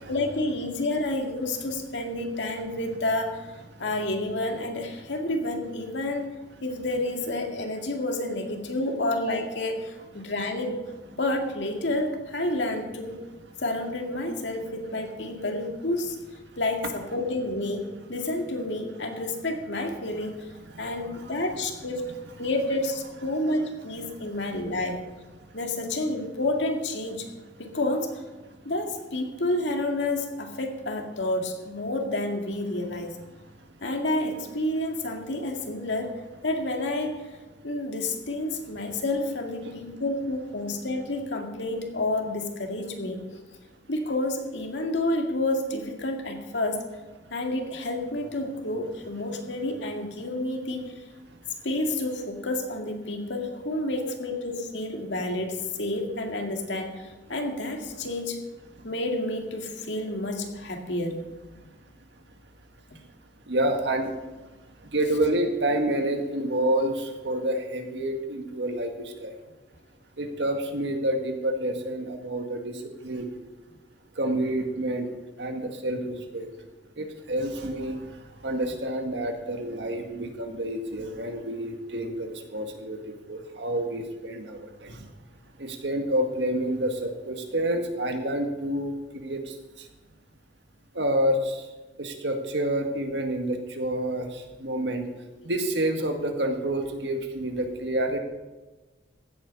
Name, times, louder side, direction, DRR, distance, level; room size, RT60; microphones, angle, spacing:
voice 1, 0.1-3.5 3.8-6.3 6.6-10.8 11.2-13.2 13.6-16.2 16.6-20.5 20.8-22.0 22.4-25.0 25.5-27.3 27.6-28.2 28.7-33.2 33.8-37.3 37.6-43.2 43.9-46.9 47.3-50.9 51.6-58.4 58.8-61.2, left 1 dB, 80° left, 3 dB, 2.1 m, -29 dB
voice 2, 20.7-21.4 24.2-24.3 25.5-25.6 39.6-39.8 58.7-58.9 63.5-64.4 64.8-69.3 70.2-73.3 74.2-75.1 75.4-76.5 77.0-85.1 85.6-89.9 90.9-91.7 92.0-95.1 95.4-98.2, right 1 dB, 70° right, 4 dB, 1.9 m, -29 dB
15.5 x 8.8 x 5.4 m, 1.2 s
head